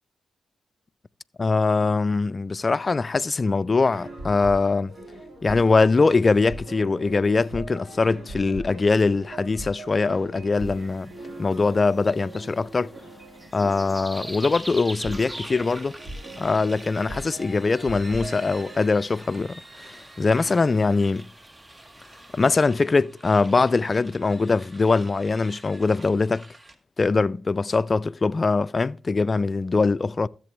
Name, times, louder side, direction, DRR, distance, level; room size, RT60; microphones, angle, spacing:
voice 1, 1.4-4.9 5.4-11.1 11.4-12.9 13.5-15.9 16.4-21.3 22.3-26.5 27.0-30.3, left 3 dB, 40° left, 0.4 m, -22 dB
sound 1, 3.7-18.9, right 1 dB, 55° right, 4.1 m, -41 dB
sound 2, 10.5-22.7, right 1 dB, 10° right, 0.7 m, -44 dB
sound 3, 14.1-26.7, right 2 dB, 30° right, 1.4 m, -47 dB
13.5 x 7.8 x 3.1 m
hypercardioid pair, 45°, 0 cm